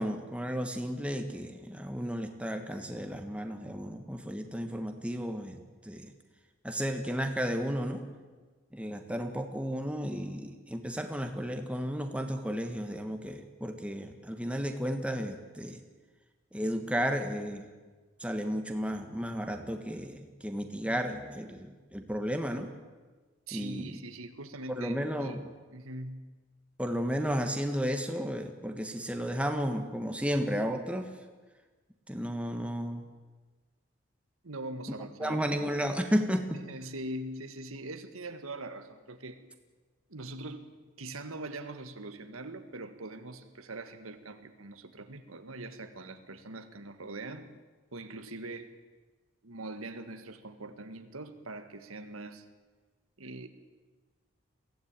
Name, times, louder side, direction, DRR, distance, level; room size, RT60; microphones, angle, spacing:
voice 1, 0.0-6.1 6.6-8.0 8.7-15.8 16.5-17.7 18.2-22.7 23.5-24.0 24.7-25.5 26.8-31.1 32.1-33.0 35.2-36.6, equal, 5° right, 5 dB, 1.4 m, -33 dB
voice 2, 23.5-25.4 25.7-26.2 34.4-35.6 36.5-39.5 40.1-47.5 47.9-48.8 49.4-52.5 53.2-53.5, right 2 dB, 90° right, 9 dB, 1.7 m, -42 dB
22.5 x 16.0 x 9.0 m, 1.3 s
head